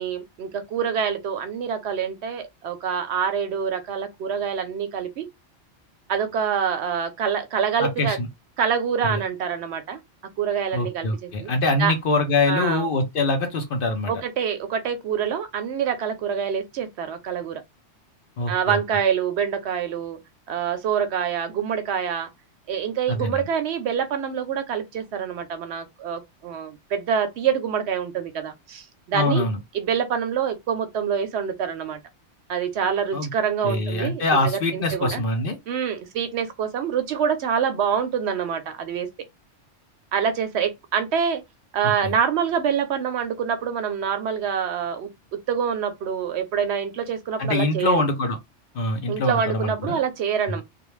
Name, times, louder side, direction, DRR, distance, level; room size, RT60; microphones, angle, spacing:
voice 1, 0.0-5.3 6.1-8.2 8.6-10.0 10.4-11.5 11.8-11.9 12.5-12.9 14.1-17.6 18.5-20.2 20.5-22.3 22.7-29.5 29.7-32.0 32.5-35.2 35.7-39.1 40.1-41.4 41.7-48.0 49.1-50.6, right 7 dB, 70° right, 0.8 m, -26 dB
voice 2, 7.8-8.3 9.1-9.2 10.7-14.1 18.4-18.8 23.1-23.4 29.1-29.6 33.1-33.3 33.6-35.6 42.0-42.1 47.4-48.4 48.7-50.0, left 2 dB, 55° left, 0.7 m, -24 dB
2.3 x 2.1 x 3.1 m
omnidirectional pair, 1.2 m